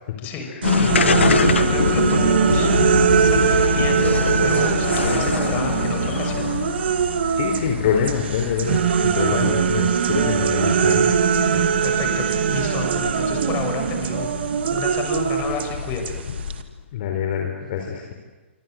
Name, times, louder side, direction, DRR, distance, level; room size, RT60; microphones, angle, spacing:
voice 1, 0.2-4.1 4.4-6.5 9.3-9.5 11.8-16.0, left 5 dB, 30° left, 5 dB, 6.4 m, -31 dB
sound 1, 0.6-16.8, left 6 dB, 70° left, 1.4 m, -26 dB
sound 2, 0.6-7.7 8.0-16.6, right 8 dB, 60° right, 2.4 m, -21 dB
voice 2, 7.4-11.1 11.5-11.6 16.9-18.1, left 7 dB, 45° left, 3 dB, 4.2 m, -25 dB
27.0 x 25.5 x 7.8 m, 1.2 s
figure-of-eight pair, 125°, 7 cm